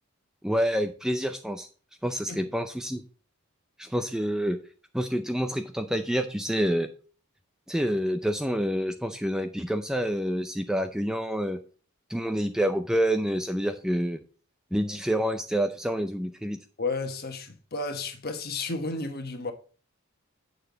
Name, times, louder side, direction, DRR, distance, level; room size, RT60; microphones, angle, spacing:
voice 1, 0.4-1.7 2.0-3.0 3.8-4.6 4.9-6.9 7.7-11.6 12.1-14.2 14.7-16.6, equal, 5° right, 0.4 m, -27 dB
voice 2, 16.8-19.5, left 3 dB, 45° left, 1.3 m, -32 dB
8.8 x 6.7 x 3.9 m
head